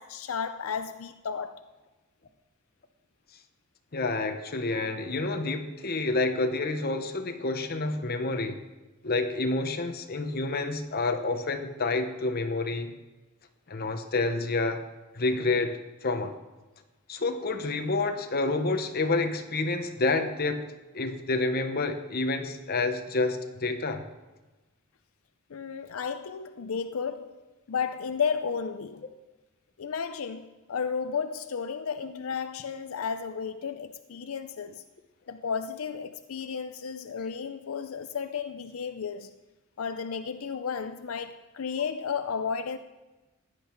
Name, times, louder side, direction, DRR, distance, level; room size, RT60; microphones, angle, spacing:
voice 1, 0.0-1.6 25.5-27.4 27.7-29.1 29.8-34.8 35.3-39.3 39.8-42.8, left 6 dB, 85° left, 0.5 m, -33 dB
voice 2, 3.9-8.6 9.0-12.9 13.7-14.8 15.1-16.4 17.1-20.7 20.9-24.0, left 3 dB, 50° left, 1.1 m, -29 dB
16.0 x 10.5 x 4.6 m
head